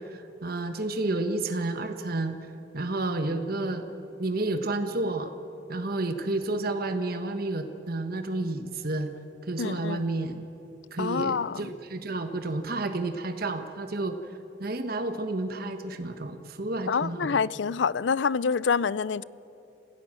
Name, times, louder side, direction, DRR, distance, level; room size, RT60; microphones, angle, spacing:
voice 1, 0.0-2.4 2.7-3.9 4.2-5.3 5.7-9.1 9.4-10.4 10.9-14.2 14.6-17.4, right 2 dB, 55° right, 1.3 m, -30 dB
voice 2, 9.6-10.0 11.0-11.7 16.9-19.2, left 5 dB, 80° left, 0.5 m, -27 dB
26.5 x 16.5 x 7.6 m
head